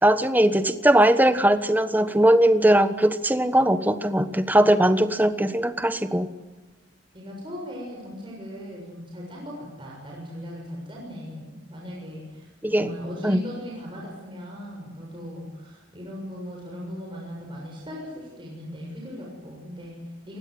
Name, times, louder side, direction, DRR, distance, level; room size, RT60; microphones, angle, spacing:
voice 1, 0.0-6.3 12.6-12.9 13.2-13.4, right 1 dB, 10° right, 10 dB, 1.3 m, -20 dB
voice 2, 7.1-20.4, equal, 25° right, -2 dB, 6.8 m, -38 dB
28.5 x 20.0 x 7.9 m, 1.2 s
head